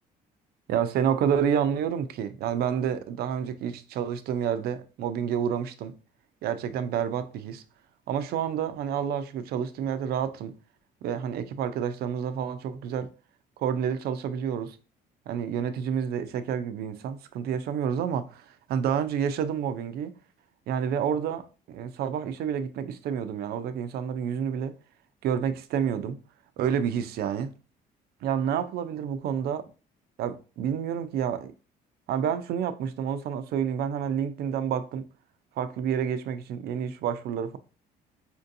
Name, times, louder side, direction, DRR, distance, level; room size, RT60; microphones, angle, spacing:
voice 1, 0.7-5.9 6.4-7.6 8.1-10.5 11.0-13.1 13.6-14.8 15.3-20.1 20.7-24.7 25.2-26.2 26.6-27.5 28.2-29.6 30.2-31.5 32.1-35.1 35.6-37.6, right 8 dB, 70° right, 0.5 m, -29 dB
4.3 x 2.7 x 2.6 m
cardioid pair, 110°, 17 cm